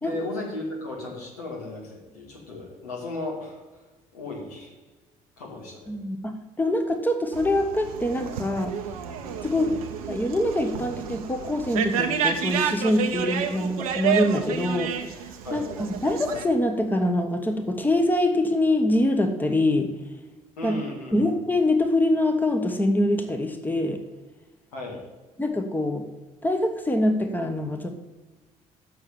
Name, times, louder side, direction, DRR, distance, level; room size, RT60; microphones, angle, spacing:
voice 1, 0.0-3.6 4.1-4.7 5.4-5.9 9.4-9.8 15.4-15.7 20.6-21.3 24.7-25.0, left 2 dB, 75° left, -2 dB, 2.5 m, -35 dB
voice 2, 5.9-8.7 9.4-9.7 10.1-14.9 15.5-15.6 16.0-19.9 20.6-20.7 21.1-24.0 25.4-26.0 26.4-27.9, left 1 dB, 10° left, 5 dB, 1.2 m, -24 dB
sound 1, 7.3-16.5, right 7 dB, 75° right, 0.7 m, -30 dB
7.0 x 6.8 x 7.0 m, 1.2 s
figure-of-eight pair, 50°, 19 cm